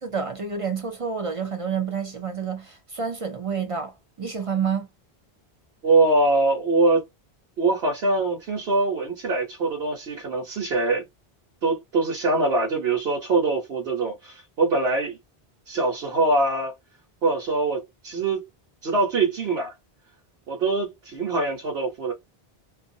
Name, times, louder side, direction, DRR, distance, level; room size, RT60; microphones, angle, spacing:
voice 1, 0.0-3.9 4.2-4.9, right 6 dB, 40° right, 0.5 m, -28 dB
voice 2, 5.8-7.0 7.6-11.0 11.6-15.2 15.7-16.7 17.2-18.4 18.8-19.7 20.5-22.1, right 3 dB, 85° right, 1.2 m, -23 dB
2.5 x 2.4 x 2.6 m
omnidirectional pair, 1.0 m